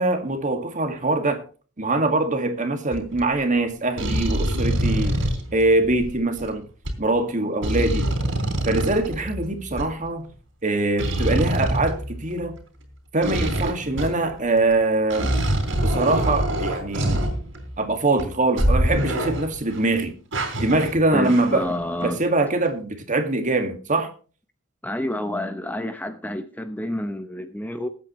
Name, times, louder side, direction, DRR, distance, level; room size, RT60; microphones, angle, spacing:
voice 1, 0.0-1.4 1.8-5.2 5.5-6.7 7.0-8.1 8.7-10.3 10.6-12.6 13.1-15.4 15.7-17.3 17.8-20.1 20.6-21.8 22.0-24.1, right 2 dB, 40° right, 2.0 m, -23 dB
sound 1, 2.9-3.2 4.0-6.5 6.9-7.0 7.6-9.9 11.0-12.6 13.2-14.3 14.7-14.8 15.1-17.8 18.2-18.3 18.6-19.8 20.3-21.8 22.0-22.2, right 1 dB, 70° right, 3.7 m, -25 dB
voice 2, 21.1-22.2 24.8-27.9, left 1 dB, 10° left, 0.8 m, -29 dB
20.5 x 8.6 x 3.1 m
head